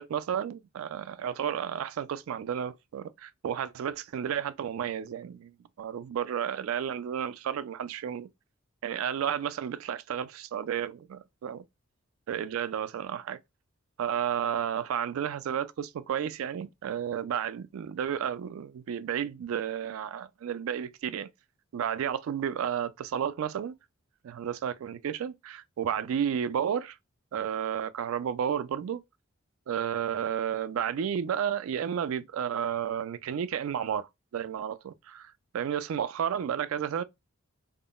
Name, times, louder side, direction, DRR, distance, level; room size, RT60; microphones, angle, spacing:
voice 1, 0.0-5.5 5.8-8.3 8.8-11.6 12.3-13.4 14.0-21.3 21.7-23.7 24.2-27.0 27.3-29.0 29.7-37.0, right 8 dB, 75° right, 0.3 m, -32 dB
3.5 x 2.0 x 2.2 m
head